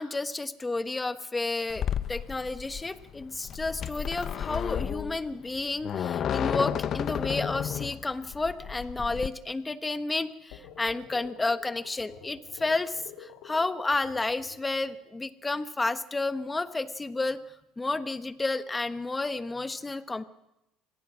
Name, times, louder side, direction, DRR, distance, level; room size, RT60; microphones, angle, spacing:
voice 1, 0.0-17.4 17.8-20.2, left 3 dB, 15° left, 11 dB, 1.3 m, -31 dB
sound 1, 1.7-9.3, left 9 dB, 50° left, 0.8 m, -32 dB
sound 2, 10.5-14.9, left 8 dB, 75° left, 2.5 m, -49 dB
26.0 x 19.0 x 6.3 m, 0.91 s
supercardioid pair, 100°, 0 cm